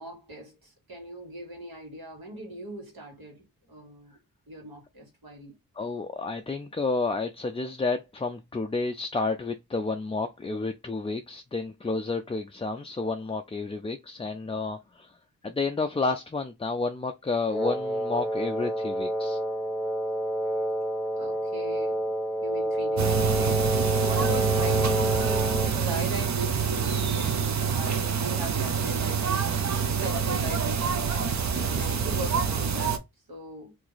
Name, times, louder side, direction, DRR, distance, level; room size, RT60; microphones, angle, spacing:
voice 1, 0.0-4.2 4.5-5.5 21.2-22.1 22.4-33.0 33.3-33.7, right 1 dB, 75° right, 1.8 m, -39 dB
voice 2, 5.8-15.2 15.4-19.4, left 3 dB, 15° left, 0.3 m, -30 dB
Wind instrument woodwind instrument, 17.5-25.8, equal, 5° right, 1.0 m, -28 dB
sound 1, 23.0-33.0, right 6 dB, 50° right, 0.6 m, -26 dB
2.9 x 2.6 x 3.9 m
cardioid pair, 50°, 36 cm